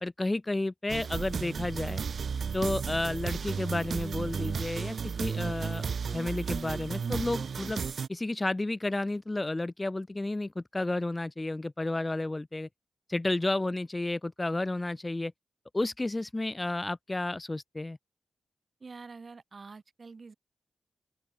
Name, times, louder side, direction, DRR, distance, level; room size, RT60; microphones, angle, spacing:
voice 1, 0.0-2.0 2.5-5.8 6.1-7.8 8.1-12.7 13.1-15.3 15.7-18.0, left 2 dB, 20° left, 0.9 m, -31 dB
sound 1, 0.9-8.1, right 6 dB, 65° right, 0.6 m, -33 dB
voice 2, 18.8-20.3, right 4 dB, 45° right, 3.4 m, -46 dB
open air
wide cardioid pair, 90°, 0 cm